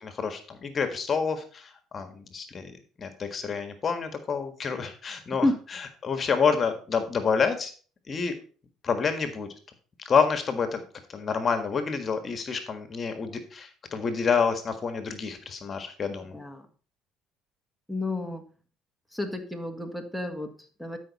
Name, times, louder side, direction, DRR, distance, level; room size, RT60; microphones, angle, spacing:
voice 1, 0.0-5.5 6.0-7.7 8.1-8.3 8.8-9.5 10.0-10.8 11.1-16.4, left 5 dB, 40° left, 8 dB, 1.6 m, -28 dB
voice 2, 16.3-16.6 17.9-18.4 19.1-21.0, left 2 dB, ahead, 3 dB, 1.7 m, -30 dB
12.5 x 5.4 x 4.2 m, 0.39 s
hypercardioid pair, 70°, 0 cm